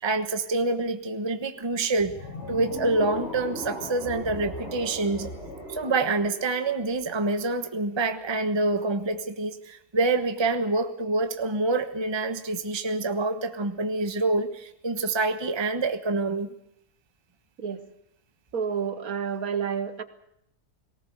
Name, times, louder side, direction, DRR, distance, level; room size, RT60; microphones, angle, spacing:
voice 1, 0.0-2.2 2.5-5.3 5.7-16.5, right 3 dB, 20° right, 8 dB, 1.1 m, -26 dB
sound 1, 2.0-7.2, left 1 dB, 40° left, 6.0 m, -38 dB
voice 2, 18.5-20.0, right 7 dB, 65° right, 11 dB, 1.7 m, -29 dB
19.0 x 19.0 x 8.0 m, 0.76 s
omnidirectional pair, 1.7 m